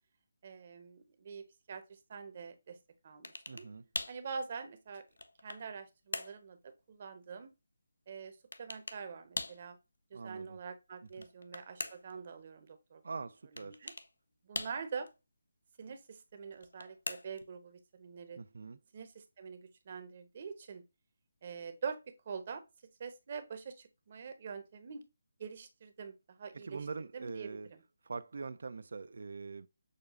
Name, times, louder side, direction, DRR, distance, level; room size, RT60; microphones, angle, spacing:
voice 1, 0.4-2.8 3.0-3.6 4.1-5.0 5.4-7.5 8.1-9.8 10.1-13.0 13.5-13.9 14.5-15.1 15.8-18.4 18.9-20.8 21.4-22.0 22.3-22.6 23.0-25.0 25.4-26.9 27.1-27.8, right 5 dB, 40° right, 0.8 m, -45 dB
sound 1, 3.2-3.7 3.9-4.2 4.9-5.7 6.1-6.4 8.5-9.0 9.3-9.6 11.1-12.2 13.6-14.1 14.5-15.1 16.5-17.5, left 3 dB, 80° left, 0.5 m, -41 dB
voice 2, 3.5-3.9 10.1-10.6 11.2-11.3 13.0-13.9 18.4-18.8 26.5-27.7 28.0-29.7, right 4 dB, 65° right, 0.4 m, -43 dB
6.5 x 2.4 x 2.4 m
figure-of-eight pair, 160°, 0 cm